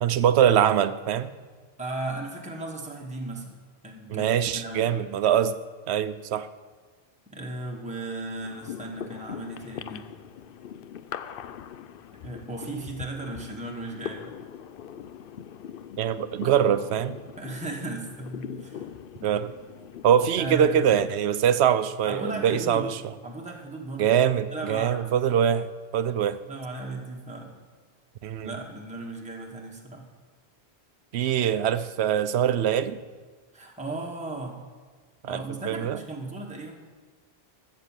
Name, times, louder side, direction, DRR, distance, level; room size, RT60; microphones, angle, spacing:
voice 1, 0.0-1.3 4.1-5.6 5.9-6.5 16.0-17.2 19.2-19.5 20.0-23.0 24.0-25.7 25.9-26.4 28.2-28.5 31.1-33.0 35.2-36.0, right 9 dB, 80° right, 13 dB, 0.9 m, -23 dB
voice 2, 1.8-3.5 3.8-5.1 7.3-10.0 12.2-14.4 17.4-18.9 20.4-21.0 22.1-22.9 23.2-24.2 24.5-25.2 26.5-27.6 28.4-30.1 33.5-34.6 35.2-36.8, right 2 dB, 5° right, 0 dB, 1.3 m, -36 dB
sound 1, 8.4-21.1, left 9 dB, 60° left, 0.7 m, -41 dB
13.0 x 7.4 x 7.4 m, 1.4 s
omnidirectional pair, 1.1 m